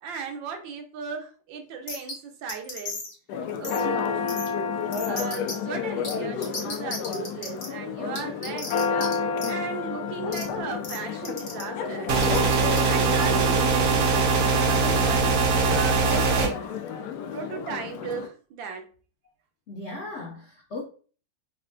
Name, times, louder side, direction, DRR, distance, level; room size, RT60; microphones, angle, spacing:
voice 1, 0.0-3.0 3.6-4.3 5.0-8.9 9.4-12.1 12.9-15.3 15.7-16.8 17.3-18.9, right 5 dB, 85° right, 1.4 m, -36 dB
sound 1, 1.9-2.1 2.5-3.1 3.6-3.8 4.3-4.5 4.9-5.5 6.0-6.1 6.4-7.7 8.1-9.1 9.4-9.5 10.3-10.4 10.8-11.0 11.2-11.6 12.2-12.8, left 3 dB, 45° left, 0.7 m, -34 dB
Church bell, 3.3-18.3, left 6 dB, 75° left, 0.9 m, -31 dB
sound 2, 12.1-16.5, right 4 dB, 65° right, 1.0 m, -22 dB
voice 2, 19.7-20.8, left 2 dB, 90° left, 0.6 m, -37 dB
5.2 x 2.1 x 2.5 m
omnidirectional pair, 2.0 m